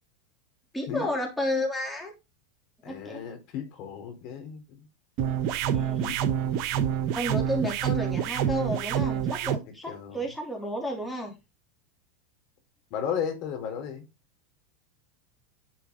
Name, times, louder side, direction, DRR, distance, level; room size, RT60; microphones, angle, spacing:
voice 1, 0.7-2.1 2.9-3.2 5.7-6.1 7.2-11.4, equal, 5° left, 3.4 m, -32 dB
voice 2, 2.8-4.8 6.0-6.6 9.9-10.2 12.9-14.1, left 8 dB, 55° left, 4.4 m, -35 dB
sound 1, 5.2-9.6, right 9 dB, 55° right, 1.2 m, -27 dB
11.0 x 5.8 x 4.0 m
hypercardioid pair, 115°, 0 cm